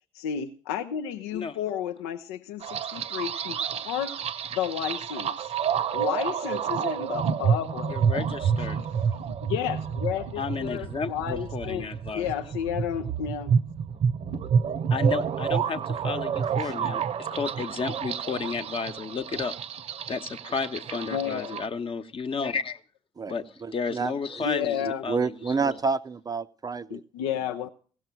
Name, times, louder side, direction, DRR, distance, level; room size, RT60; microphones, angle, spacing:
voice 1, 0.1-4.2 4.5-5.5 5.9-8.0 8.6-8.7 9.4-11.9 12.1-13.5 21.1-21.6 24.4-25.0 26.9-27.7, left 9 dB, 80° left, 5 dB, 0.5 m, -32 dB
sound 1, 2.6-21.7, right 7 dB, 55° right, 0.8 m, -29 dB
voice 2, 7.9-8.8 10.4-12.4 14.9-19.5 20.1-22.8 23.3-23.4 23.7-25.8, left 5 dB, 45° left, 8 dB, 1.0 m, -32 dB
voice 3, 23.6-24.4 24.8-27.0, right 5 dB, 30° right, 11 dB, 0.5 m, -29 dB
16.5 x 6.5 x 6.0 m, 0.42 s
figure-of-eight pair, 40°, 13 cm